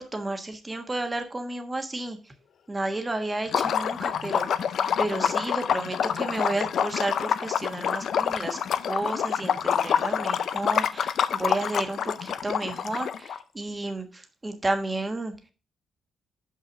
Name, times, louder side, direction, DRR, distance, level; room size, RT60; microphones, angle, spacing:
voice 1, 0.0-2.2 2.7-4.5 5.0-8.6 8.9-15.3, right 2 dB, 20° right, 5 dB, 1.3 m, -32 dB
Liquid, 3.5-13.4, left 8 dB, 65° left, 0.5 m, -27 dB
5.7 x 5.5 x 5.3 m, 0.35 s
cardioid pair, 85°, 0 cm